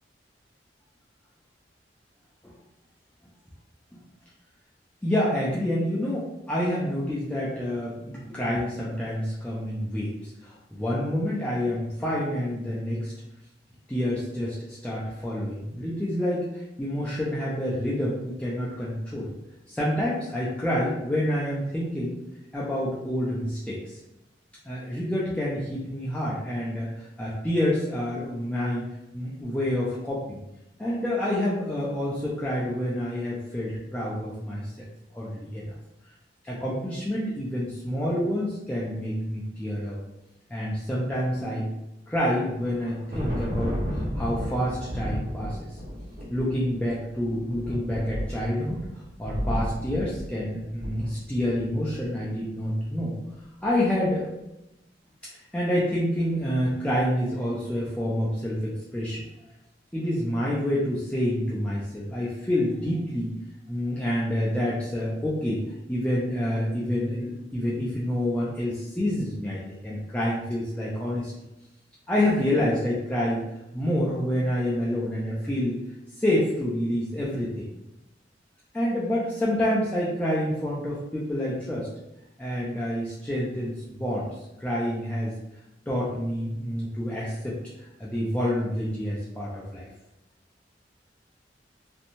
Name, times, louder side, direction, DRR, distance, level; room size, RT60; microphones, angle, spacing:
voice 1, 5.0-13.1 13.9-19.3 19.7-22.2 22.5-24.0 24.7-28.8 29.1-30.4 30.8-34.8 35.1-35.7 36.4-40.0 40.5-41.7 42.1-45.6 46.3-48.9 49.2-53.1 53.6-54.3 55.3-59.2 59.9-63.3 63.7-65.6 65.9-71.3 72.1-73.4 73.7-75.8 76.1-77.6 78.7-81.9 82.4-84.3 84.6-85.3 85.9-87.6 88.0-89.9, left 1 dB, 5° left, -7 dB, 0.4 m, -28 dB
Thunder, 42.6-51.9, equal, 55° right, 0.8 m, -33 dB
2.6 x 2.1 x 2.9 m, 0.90 s
head